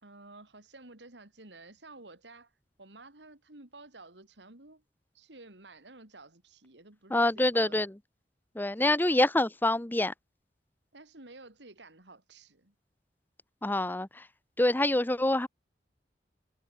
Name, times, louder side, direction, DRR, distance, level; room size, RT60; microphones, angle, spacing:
voice 1, 0.0-2.5 2.8-4.8 5.1-7.8 8.8-9.2 10.9-12.7, right 2 dB, 90° right, 3.6 m, -52 dB
voice 2, 7.1-7.9 8.5-10.1 13.6-14.2 14.6-15.5, left 1 dB, 10° left, 0.7 m, -26 dB
head